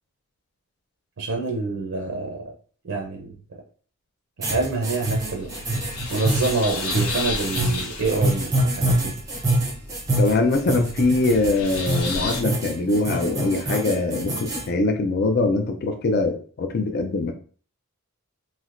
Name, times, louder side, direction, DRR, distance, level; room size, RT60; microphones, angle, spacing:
voice 1, 1.2-2.4 2.8-3.3 4.4-5.5 6.1-9.1, right 3 dB, 60° right, 1 dB, 0.5 m, -26 dB
sound 1, 4.4-14.7, right 1 dB, 15° right, 0.5 m, -25 dB
sound 2, 5.0-12.4, left 3 dB, 85° left, 0.7 m, -33 dB
voice 2, 10.2-17.3, left 3 dB, 45° left, 5 dB, 0.3 m, -23 dB
3.1 x 2.7 x 2.5 m, 0.43 s
head